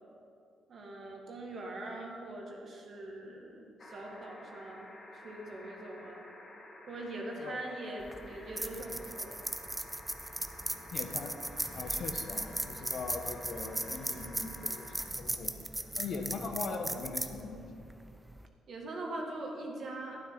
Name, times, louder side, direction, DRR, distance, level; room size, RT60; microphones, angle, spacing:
voice 1, 0.7-6.2 6.9-9.4 15.9-16.1 18.7-20.2, right 1 dB, 55° right, 0 dB, 2.0 m, -42 dB
sound 1, 3.8-15.0 16.5-16.6, left 1 dB, 45° left, 2.0 m, -51 dB
sound 2, 8.0-18.5, right 1 dB, 10° right, 0.6 m, -38 dB
voice 2, 10.9-11.4 11.7-15.5 16.0-17.9, left 4 dB, 70° left, 4 dB, 1.1 m, -40 dB
12.0 x 9.2 x 4.0 m, 2.5 s
cardioid pair, 90°, 0 cm